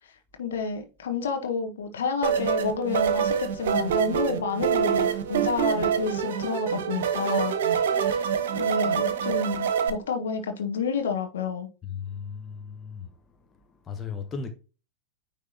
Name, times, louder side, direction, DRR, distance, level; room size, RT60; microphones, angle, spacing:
voice 1, 0.4-11.7, left 5 dB, 65° left, 1.3 m, -30 dB
sound 1, 2.2-9.9, right 8 dB, 60° right, 1.0 m, -25 dB
voice 2, 11.8-13.1 13.9-14.5, left 6 dB, 20° left, 1.0 m, -36 dB
9.6 x 3.4 x 2.8 m
figure-of-eight pair, 90°, 0 cm